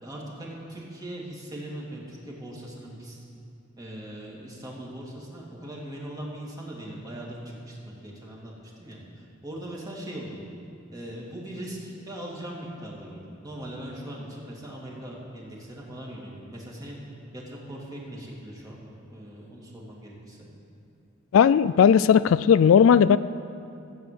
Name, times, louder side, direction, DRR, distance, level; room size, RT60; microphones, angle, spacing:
voice 1, 0.0-3.2 3.8-8.5 8.8-10.4 10.9-17.0 17.3-20.5, right 1 dB, 20° right, -4 dB, 2.6 m, -40 dB
voice 2, 21.3-23.2, left 7 dB, 75° left, 16 dB, 0.3 m, -17 dB
14.5 x 8.2 x 7.7 m, 2.5 s
head